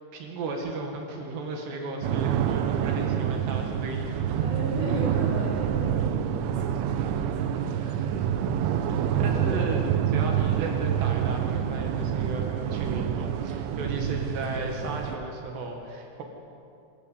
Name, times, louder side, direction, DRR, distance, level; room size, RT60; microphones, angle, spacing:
voice 1, 0.1-4.4 8.1-8.6 8.9-9.8 10.1-16.2, right 2 dB, 65° right, 2 dB, 3.9 m, -35 dB
sound 1, 2.0-15.2, right 9 dB, 85° right, 3.4 m, -27 dB
voice 2, 4.4-9.7, right 1 dB, 25° left, -5 dB, 5.1 m, -36 dB
25.0 x 14.5 x 8.4 m, 2.5 s
omnidirectional pair, 5.4 m